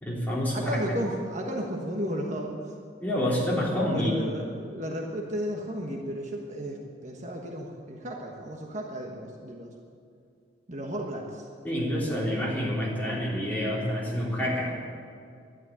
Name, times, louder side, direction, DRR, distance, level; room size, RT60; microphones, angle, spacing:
voice 1, 0.0-0.8 3.0-4.1 11.6-14.7, equal, 10° left, -6 dB, 3.5 m, -28 dB
voice 2, 0.5-2.7 3.9-9.7 10.7-11.5, equal, 40° right, 0 dB, 1.3 m, -34 dB
12.0 x 10.5 x 9.8 m, 2.3 s
head